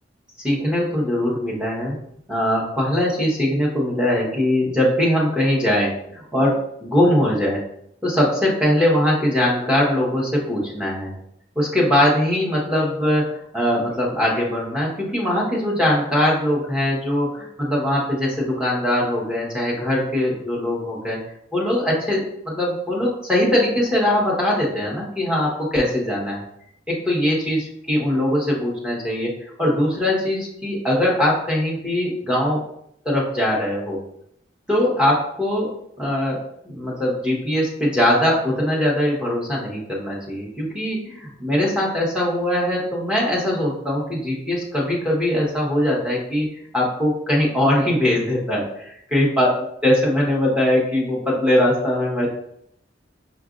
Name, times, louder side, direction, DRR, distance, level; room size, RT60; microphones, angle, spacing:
voice 1, 0.4-2.0 2.3-7.6 8.0-11.1 11.5-21.2 21.5-26.4 26.9-29.3 29.6-32.6 33.0-34.0 34.7-35.7 36.0-46.5 46.7-49.5 49.8-52.3, left 1 dB, 5° right, -5 dB, 1.1 m, -21 dB
5.8 x 2.5 x 2.5 m, 0.71 s
head